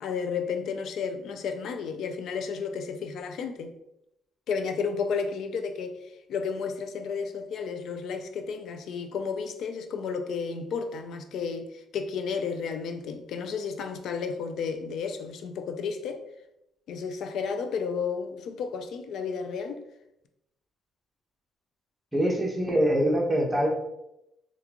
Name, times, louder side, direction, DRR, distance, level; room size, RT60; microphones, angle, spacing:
voice 1, 0.0-3.7 4.5-6.0 6.3-16.2 16.9-19.8, left 5 dB, 75° left, 0.4 m, -32 dB
voice 2, 22.1-23.7, equal, 15° right, 0.9 m, -24 dB
3.6 x 2.3 x 2.9 m
cardioid pair, 90°, 0 cm